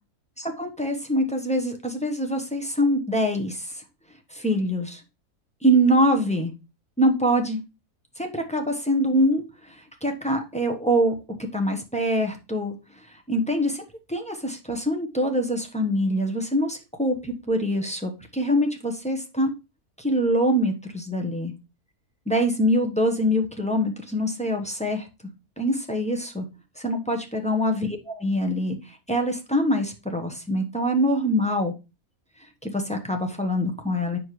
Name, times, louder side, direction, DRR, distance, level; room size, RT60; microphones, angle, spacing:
voice 1, 0.4-3.7 4.3-5.0 5.6-6.5 7.0-7.6 8.2-9.4 10.0-11.2 11.5-12.7 13.3-13.8 14.1-19.5 20.0-21.5 22.3-25.1 25.6-26.4 26.8-27.9 28.1-28.8 29.1-31.7 32.6-34.2, equal, 5° left, 3 dB, 0.9 m, -24 dB
7.6 x 5.9 x 3.1 m, 0.28 s
omnidirectional pair, 1.5 m